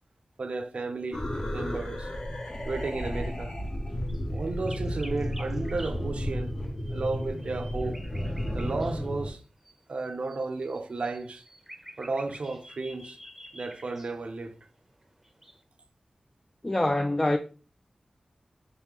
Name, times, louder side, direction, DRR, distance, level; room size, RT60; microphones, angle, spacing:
voice 1, 0.4-1.3 1.5-2.1 2.6-3.6 4.3-6.5 6.9-8.0 8.5-9.4 9.9-11.4 12.0-13.2 13.5-14.5, right 3 dB, 70° right, 0.5 m, -33 dB
sound 1, 1.1-9.3, equal, 40° left, 0.8 m, -33 dB
sound 2, 2.4-3.1 3.7-9.1 9.4-15.6, equal, 10° right, 0.7 m, -50 dB
voice 2, 16.6-17.4, left 1 dB, 25° left, 0.3 m, -25 dB
3.7 x 3.3 x 2.9 m
wide cardioid pair, 55°, 2 cm